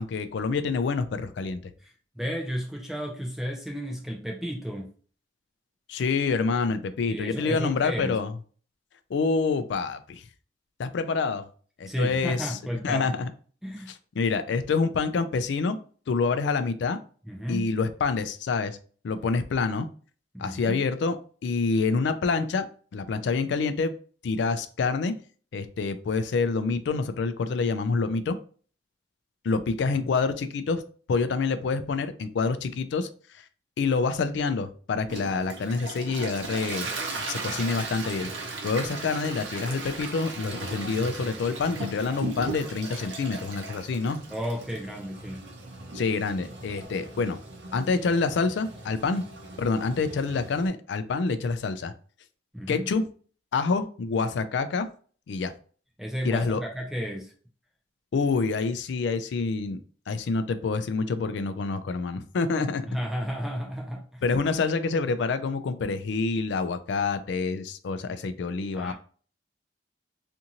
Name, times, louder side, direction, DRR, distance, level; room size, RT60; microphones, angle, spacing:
voice 1, 0.0-1.6 5.9-8.3 9.1-10.2 10.8-11.5 11.8-12.6 12.8-13.3 14.2-15.8 16.1-17.0 17.5-18.8 19.0-19.9 20.4-21.2 21.4-22.7 22.9-23.9 24.2-25.1 25.5-28.4 29.4-30.8 31.1-33.1 33.3-33.4 33.8-36.9 37.2-38.3 38.6-44.2 45.9-47.4 47.7-49.2 49.6-51.9 52.7-53.0 53.5-54.9 55.3-55.5 56.2-56.6 58.1-59.8 60.1-62.8 64.2-68.9, left 4 dB, 70° left, 11 dB, 0.3 m, -27 dB
voice 2, 1.8-4.9 7.1-8.2 11.9-13.2 13.6-13.9 17.2-17.7 20.3-20.8 29.9-30.1 44.3-45.4 52.5-52.9 56.0-57.3 62.9-64.2 68.7-68.9, equal, ahead, -1 dB, 0.4 m, -33 dB
Toilet flush, 35.1-50.7, right 3 dB, 75° right, 0.7 m, -37 dB
2.6 x 2.5 x 2.8 m, 0.43 s
head